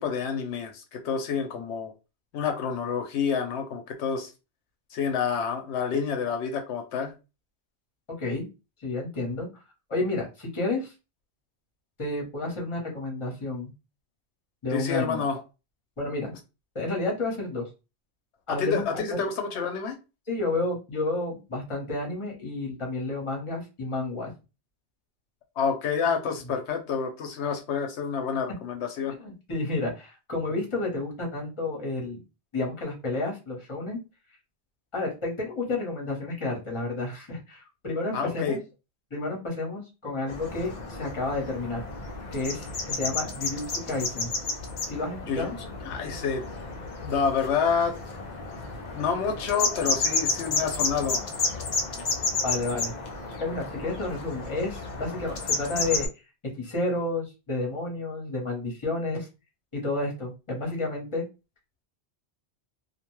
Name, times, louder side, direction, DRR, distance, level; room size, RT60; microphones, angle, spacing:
voice 1, 0.0-1.9 2.3-4.3 4.9-7.1 14.7-15.4 18.5-20.0 25.6-29.2 38.1-38.6 45.3-46.6 47.0-47.9 48.9-51.2, left 6 dB, 80° left, 0.9 m, -28 dB
voice 2, 8.1-8.5 8.8-9.6 9.9-10.9 12.0-13.7 14.6-15.2 16.0-16.3 16.7-17.7 18.5-18.8 19.1-19.2 20.3-24.3 29.1-32.2 32.5-34.0 34.9-38.6 39.1-41.9 42.3-44.3 44.9-45.6 52.4-52.9 53.4-56.1 56.6-59.3 59.7-61.2, left 2 dB, 30° left, 1.0 m, -31 dB
sound 1, 40.3-56.1, left 3 dB, 50° left, 0.6 m, -32 dB
2.5 x 2.2 x 3.0 m
omnidirectional pair, 1.1 m